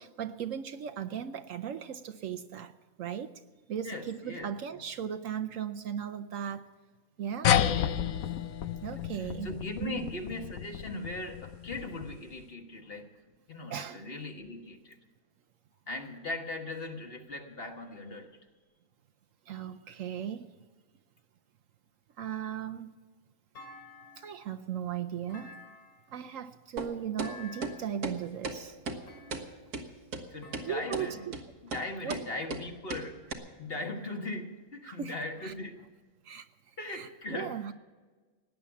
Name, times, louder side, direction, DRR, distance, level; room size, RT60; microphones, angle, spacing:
voice 1, 0.0-2.7 3.0-3.4 3.7-6.7 7.2-7.5 8.8-9.6 9.8-10.1 13.7-14.0 19.5-20.5 22.2-23.0 24.2-25.5 26.1-28.8 30.7-31.2 32.0-32.2 34.9-35.1 35.4-35.5 36.2-36.5 36.9-37.7, right 9 dB, 65° right, 8 dB, 1.0 m, -37 dB
voice 2, 3.8-4.8 7.6-8.0 8.4-13.1 13.5-15.0 15.9-18.4 30.3-31.3 31.6-35.8 36.8-37.6, left 2 dB, 40° left, 4 dB, 1.6 m, -40 dB
sound 1, 7.4-12.3, left 10 dB, 70° left, 1.1 m, -31 dB
Thump thud, 23.5-24.5 25.3-26.2 27.2-28.0 29.1-29.8 30.4-31.4, left 3 dB, 85° left, 3.1 m, -50 dB
sound 2, 26.8-26.9 27.2-27.3 27.6-27.7 28.0-28.2 28.4-28.6 28.9-29.0 29.3-29.4 29.7-29.8 30.1-30.2 30.5-30.7 30.9-31.1 31.3-31.4 31.7-31.8 32.1-32.2 32.5-32.6 32.9-33.0 33.3-33.4, right 3 dB, 85° right, 2.0 m, -35 dB
17.5 x 10.0 x 7.1 m, 1.4 s
omnidirectional pair, 1.6 m